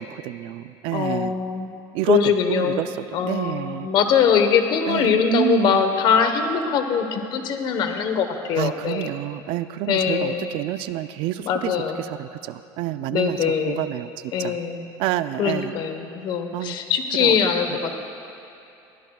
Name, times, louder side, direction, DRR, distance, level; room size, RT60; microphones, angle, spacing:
voice 1, 0.0-1.4 1.9-2.2 2.5-3.9 4.9-5.8 8.6-11.7 12.0-14.1 14.4-14.6 15.0-15.7 16.5-16.8 17.2-17.4, right 15 dB, 70° right, 13 dB, 0.5 m, -28 dB
voice 2, 0.9-1.7 2.0-2.8 3.1-9.1 9.9-10.5 11.4-12.0 13.1-13.8 14.3-14.8 15.4-18.0, left 7 dB, 55° left, 6 dB, 1.1 m, -22 dB
21.5 x 15.5 x 2.4 m, 2.8 s
cardioid pair, 140°, 9 cm